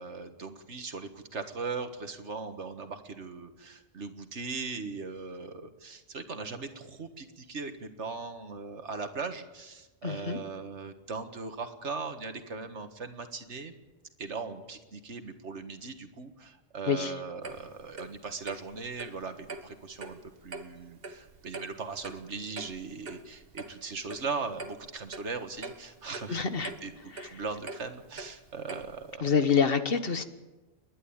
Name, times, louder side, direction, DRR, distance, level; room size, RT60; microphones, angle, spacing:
voice 1, 0.0-13.7 14.2-29.4, right 4 dB, 80° right, 8 dB, 1.9 m, -39 dB
voice 2, 10.0-10.4 16.9-17.1 26.3-26.7 27.1-27.3 29.2-30.2, left 6 dB, 55° left, 9 dB, 1.5 m, -27 dB
Clock, 17.4-29.2, right 3 dB, 55° right, 1.6 m, -45 dB
29.5 x 11.0 x 8.8 m, 1.2 s
omnidirectional pair, 1.2 m